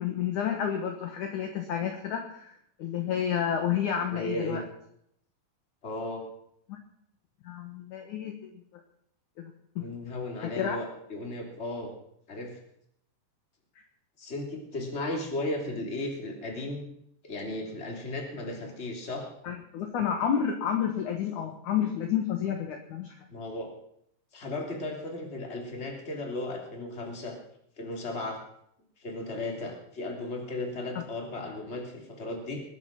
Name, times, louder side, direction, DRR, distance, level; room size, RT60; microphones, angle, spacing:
voice 1, 0.0-2.5 2.8-4.6 6.7-6.8 7.4-8.5 9.4-9.9 10.4-10.8 19.4-23.1, left 8 dB, 60° left, 4 dB, 2.3 m, -30 dB
voice 2, 4.1-4.6 5.8-6.2 9.8-11.9 12.3-12.6 14.2-16.9 17.2-19.3 23.3-23.7 24.3-27.4 27.8-28.4 29.0-32.6, left 2 dB, 20° left, 1 dB, 2.7 m, -35 dB
21.0 x 9.8 x 5.9 m, 0.71 s
omnidirectional pair, 4.9 m